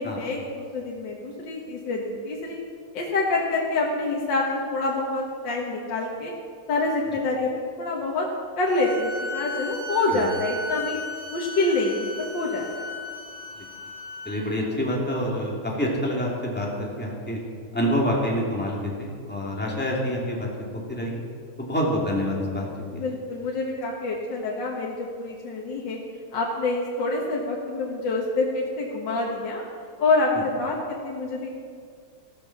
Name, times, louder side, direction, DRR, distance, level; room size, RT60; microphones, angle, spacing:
voice 1, 0.0-2.6 2.9-6.3 6.7-7.5 7.8-8.3 8.6-11.0 11.3-12.9 22.9-26.0 26.3-29.6 30.0-31.5, left 2 dB, 65° left, -2 dB, 2.2 m, -26 dB
sound 1, 8.7-14.4, left 2 dB, 85° right, 4.0 m, -35 dB
voice 2, 14.2-17.4 17.7-20.5 20.7-21.2 21.6-22.7 22.9-23.0, equal, 5° left, -3 dB, 2.6 m, -27 dB
15.5 x 12.5 x 5.9 m, 2.2 s
omnidirectional pair, 2.2 m